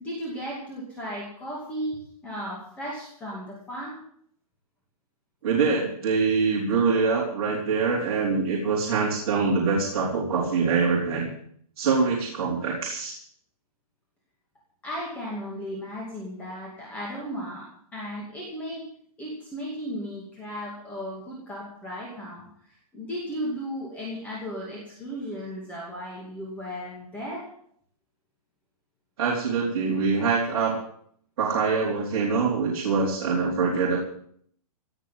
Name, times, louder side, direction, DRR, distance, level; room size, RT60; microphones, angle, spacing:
voice 1, 0.0-4.0 14.8-18.8 19.2-27.5, equal, 5° left, -4 dB, 2.4 m, -35 dB
voice 2, 5.4-11.3 11.8-13.2 29.2-30.8 31.4-34.0, right 4 dB, 40° right, -5 dB, 4.2 m, -24 dB
17.5 x 7.2 x 9.4 m, 0.63 s
hypercardioid pair, 175°, 19 cm